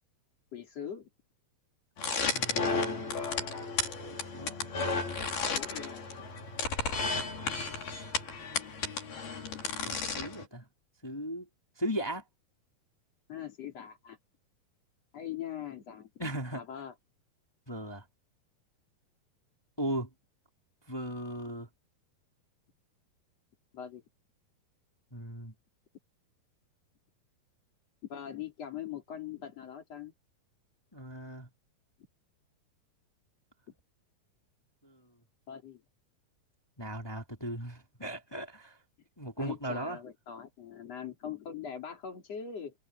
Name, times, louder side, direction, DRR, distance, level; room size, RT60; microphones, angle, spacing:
voice 1, 0.5-1.1 5.5-6.0 13.3-14.2 15.1-16.9 23.7-24.0 28.1-30.1 35.5-35.8 39.4-42.7, left 9 dB, 45° left, 4.3 m, -42 dB
sound 1, 2.0-10.4, left 4 dB, 85° left, 6.8 m, -33 dB
voice 2, 2.3-3.0 4.1-4.6 9.8-10.7 11.0-11.5 11.8-12.2 16.2-16.6 17.7-18.0 19.8-20.1 20.9-21.7 25.1-25.5 30.9-31.5 34.8-34.9 36.8-38.8 39.2-40.0, right 1 dB, 10° left, 2.3 m, -37 dB
omnidirectional pair, 4.3 m